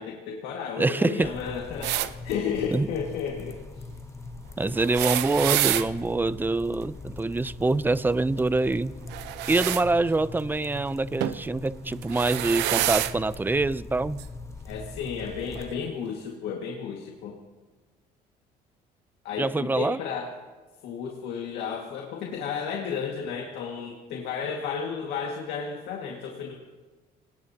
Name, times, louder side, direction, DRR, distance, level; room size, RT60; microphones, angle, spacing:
voice 1, 0.0-3.6 14.7-17.4 19.2-20.3 20.8-26.5, left 6 dB, 85° left, 0 dB, 1.9 m, -33 dB
voice 2, 0.8-1.3 2.7-2.9 4.6-8.9 9.5-14.2 19.4-20.0, right 3 dB, 10° right, 16 dB, 0.5 m, -25 dB
sound 1, 1.2-15.8, left 3 dB, 15° left, 1.0 m, -41 dB
sound 2, 1.8-2.1 4.7-5.9 9.1-9.8 11.2-11.4 12.0-13.1 14.2-14.3 15.5-15.6, right 14 dB, 90° right, 0.8 m, -27 dB
26.5 x 19.0 x 2.9 m, 1.3 s
cardioid pair, 110°, 17 cm